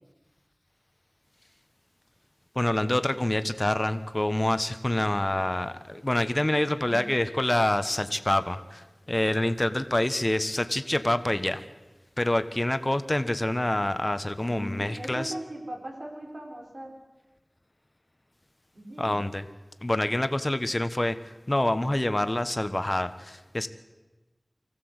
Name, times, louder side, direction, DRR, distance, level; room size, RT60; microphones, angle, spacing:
voice 1, 2.5-11.6 12.2-15.3 19.0-19.4 19.8-21.2 21.5-23.7, left 1 dB, 35° left, 11 dB, 1.2 m, -26 dB
voice 2, 6.6-7.2 14.5-16.9 18.7-19.2, right 1 dB, 85° right, 0 dB, 5.3 m, -39 dB
24.5 x 15.5 x 8.0 m, 1.2 s
wide cardioid pair, 40°, 0 cm